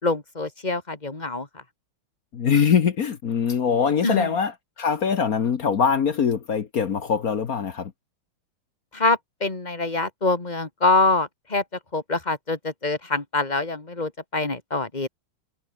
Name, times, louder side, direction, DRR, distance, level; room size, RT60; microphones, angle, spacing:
voice 1, 0.0-1.5 4.0-4.3 8.9-11.6 11.9-15.1, left 3 dB, 20° left, 2.6 m, -25 dB
voice 2, 2.3-7.9, left 6 dB, 50° left, 1.5 m, -23 dB
omnidirectional pair, 2.2 m